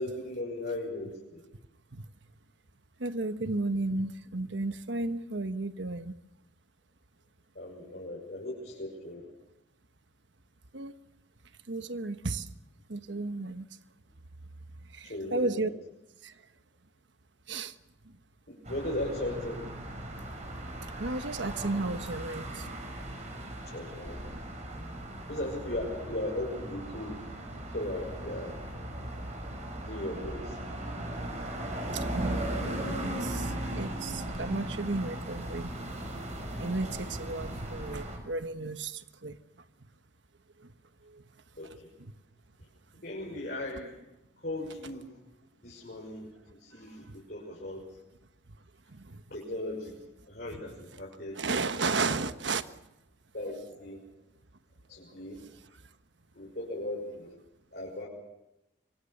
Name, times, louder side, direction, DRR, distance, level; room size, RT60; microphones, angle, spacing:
voice 1, 0.0-1.4 7.5-9.3 15.0-15.7 18.5-19.6 23.7-24.2 25.3-27.3 27.7-28.5 29.8-30.6 41.6-41.9 43.0-44.0 44.4-45.1 45.6-47.8 49.3-51.4 51.9-52.2 53.3-54.0 54.9-55.4 56.3-57.3 57.7-58.1, left 1 dB, 55° left, -4 dB, 6.2 m, -37 dB
voice 2, 3.0-6.1 10.7-10.9 11.7-12.5 12.9-13.7 14.9-15.7 16.2-16.3 17.5-17.7 21.0-22.7 31.9-32.4 33.0-35.7 36.6-39.4 41.0-41.2 47.1-47.2 48.9-49.2 51.3-52.7, right 3 dB, 75° right, 11 dB, 1.2 m, -33 dB
sound 1, 18.6-38.2, right 1 dB, 40° right, 6.0 m, -37 dB
25.5 x 24.0 x 6.8 m, 0.90 s
head